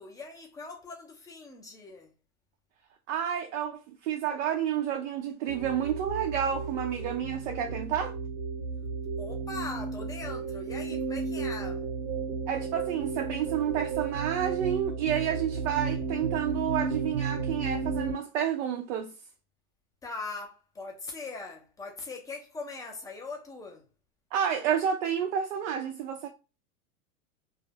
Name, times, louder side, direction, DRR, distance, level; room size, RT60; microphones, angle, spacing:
voice 1, 0.0-2.1 9.2-11.9 20.0-23.8, left 3 dB, 10° left, 0.4 m, -41 dB
voice 2, 3.1-8.1 12.5-19.1 24.3-26.3, right 9 dB, 60° right, 0.5 m, -30 dB
sound 1, 5.5-18.1, right 4 dB, 85° right, 1.0 m, -33 dB
2.3 x 2.0 x 3.2 m
hypercardioid pair, 110°, 43 cm